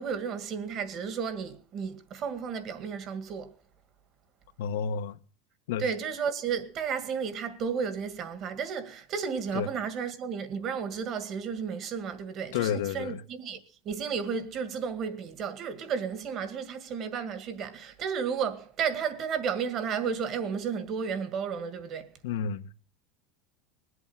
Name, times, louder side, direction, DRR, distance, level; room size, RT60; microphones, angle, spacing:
voice 1, 0.0-3.5 5.8-13.6 13.9-22.1, right 6 dB, 40° right, 2.0 m, -33 dB
voice 2, 4.6-5.2 5.7-5.9 9.5-9.7 12.5-13.2 22.2-22.7, left 7 dB, 85° left, 1.1 m, -30 dB
20.5 x 8.1 x 7.8 m
supercardioid pair, 145°, 0 cm